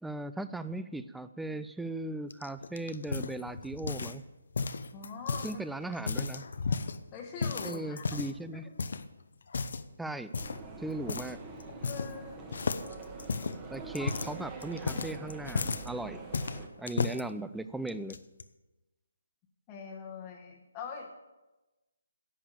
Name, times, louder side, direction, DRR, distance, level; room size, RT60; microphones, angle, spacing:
voice 1, 0.0-4.2 5.4-6.4 7.6-8.7 10.0-10.3 10.8-11.4 13.7-16.2 16.8-18.2, right 2 dB, ahead, 12 dB, 0.3 m, -38 dB
sound 1, 2.3-4.2 4.5-5.5 5.9-7.0 7.4-8.4 8.8-9.0 9.5-9.9 10.3-10.6 11.1-11.3 11.6-12.2 12.5-15.9 16.3-17.2 17.9-18.4, left 4 dB, 65° left, 0.7 m, -34 dB
voice 2, 4.9-5.6 7.1-8.2 8.5-8.6 11.9-12.4 14.0-14.1 19.7-21.1, left 6 dB, 20° left, -2 dB, 1.1 m, -43 dB
sound 2, 10.4-16.7, right 4 dB, 15° right, 1.4 m, -45 dB
11.0 x 7.1 x 7.5 m, 1.1 s
hypercardioid pair, 155°, 0 cm